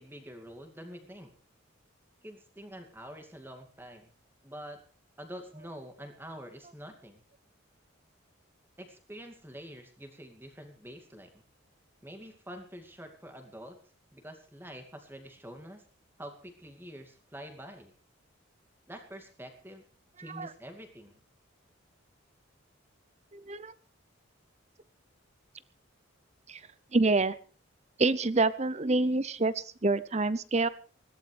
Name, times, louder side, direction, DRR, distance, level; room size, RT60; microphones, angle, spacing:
voice 1, 0.0-1.3 2.2-4.1 4.4-4.8 5.2-7.2 8.8-11.3 12.0-13.8 14.1-15.8 16.2-17.9 18.9-19.8 20.2-21.2, equal, 10° right, 6 dB, 2.4 m, -46 dB
voice 2, 23.3-23.7 26.5-26.6 26.9-27.4 28.0-30.7, right 3 dB, 35° right, 17 dB, 0.7 m, -27 dB
21.0 x 16.0 x 3.4 m, 0.38 s
head